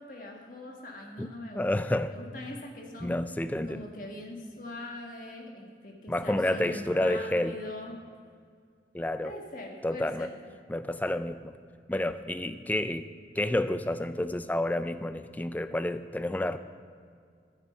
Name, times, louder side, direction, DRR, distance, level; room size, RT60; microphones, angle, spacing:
voice 1, 0.0-1.6 2.1-3.2 3.6-8.0 9.2-10.3, left 2 dB, 50° left, 1 dB, 1.6 m, -42 dB
voice 2, 1.5-2.1 3.0-3.8 6.1-7.6 8.9-9.3 9.8-10.3 10.7-11.5 11.9-13.1 13.4-16.6, left 1 dB, 10° left, 11 dB, 0.3 m, -29 dB
10.5 x 9.0 x 5.5 m, 2.1 s
head